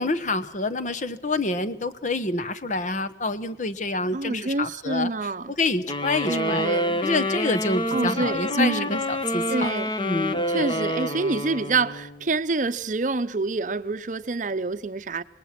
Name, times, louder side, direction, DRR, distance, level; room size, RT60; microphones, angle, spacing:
voice 1, 0.0-5.1 5.6-6.7 7.0-9.7 10.0-10.8, left 2 dB, 45° left, 1.0 m, -27 dB
voice 2, 4.1-5.5 6.3-7.0 7.9-8.9 9.5-9.9 10.5-15.2, right 3 dB, 45° right, 0.7 m, -27 dB
sound 1, 5.9-12.3, equal, 30° left, 1.4 m, -27 dB
26.0 x 20.0 x 5.9 m
head